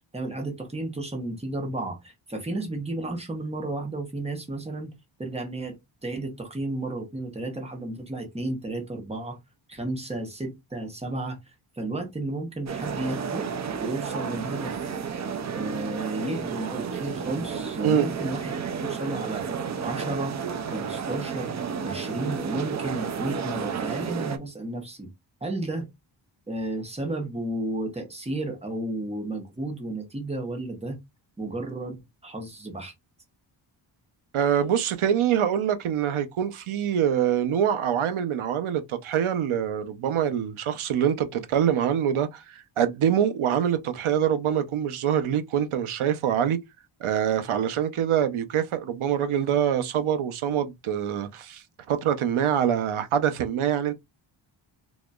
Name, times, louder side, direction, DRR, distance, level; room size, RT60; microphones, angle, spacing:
voice 1, 0.1-4.9 5.2-5.8 6.0-9.4 9.7-11.4 11.7-13.5 13.8-14.7 15.5-18.5 18.8-19.4 19.8-20.4 20.7-21.5 21.8-25.1 25.4-25.9 26.5-31.0 31.4-32.9, right 2 dB, 15° right, 1.0 m, -32 dB
sound 1, 12.7-24.4, right 6 dB, 40° right, 0.4 m, -32 dB
voice 2, 34.3-46.6 47.0-53.9, right 9 dB, 80° right, 0.8 m, -25 dB
4.1 x 2.9 x 2.4 m
wide cardioid pair, 175°, 48 cm